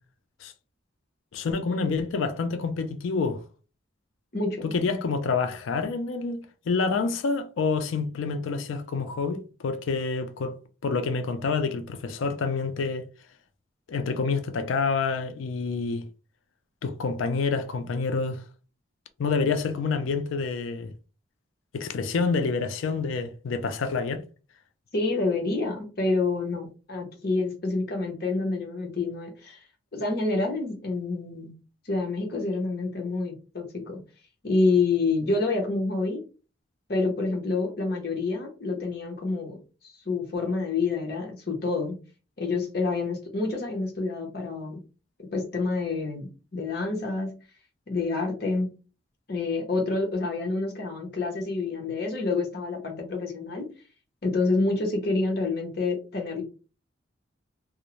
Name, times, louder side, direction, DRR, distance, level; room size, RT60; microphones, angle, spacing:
voice 1, 1.3-3.4 4.6-10.6 10.8-13.1 13.9-16.1 16.8-18.4 19.2-20.9 21.7-24.2, left 4 dB, 85° left, 0.4 m, -28 dB
voice 2, 4.3-4.7 24.9-29.6 29.9-31.5 31.8-34.0 34.4-36.2 36.9-39.6 39.8-42.0 42.4-44.8 45.3-47.3 47.9-48.7 49.3-53.7 54.2-56.4, left 3 dB, 50° left, 0.8 m, -28 dB
2.5 x 2.0 x 2.9 m
head